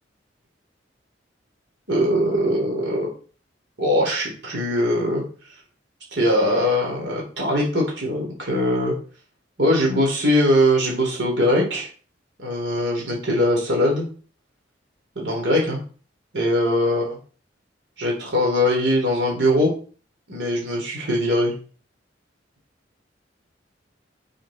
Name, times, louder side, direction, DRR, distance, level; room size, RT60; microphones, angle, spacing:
voice 1, 1.9-3.1 3.8-5.2 6.1-8.9 9.6-11.9 12.4-14.0 15.2-15.8 16.3-17.2 18.0-19.7 20.3-21.5, equal, 70° right, -1 dB, 3.7 m, -21 dB
8.3 x 6.4 x 4.3 m, 0.39 s
head